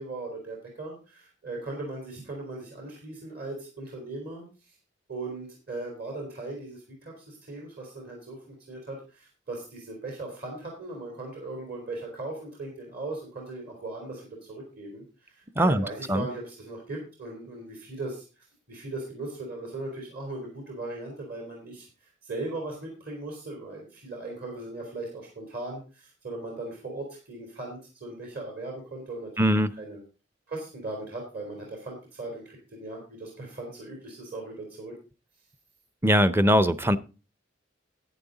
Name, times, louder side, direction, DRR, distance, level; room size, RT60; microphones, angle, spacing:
voice 1, 0.0-4.7 5.1-18.2 18.7-30.0 30.5-34.9, right 2 dB, 55° right, 0 dB, 3.5 m, -38 dB
voice 2, 15.6-16.3 29.4-29.7 36.0-37.0, equal, 15° right, 15 dB, 0.5 m, -21 dB
11.0 x 9.1 x 4.0 m, 0.32 s
head